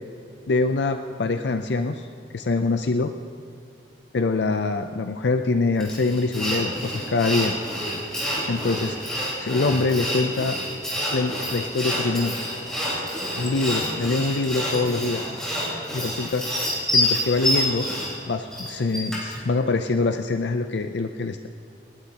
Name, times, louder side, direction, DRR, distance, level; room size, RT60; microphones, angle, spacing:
voice 1, 0.5-2.1 2.3-3.1 4.1-7.6 8.5-9.0 9.4-10.6 11.1-12.3 13.4-15.3 15.9-16.5 16.9-17.9 18.3-21.5, left 3 dB, 70° left, 7 dB, 0.5 m, -24 dB
Sawing, 5.8-19.4, left 1 dB, 5° left, 4.5 m, -27 dB
28.0 x 11.5 x 2.9 m, 2.3 s
head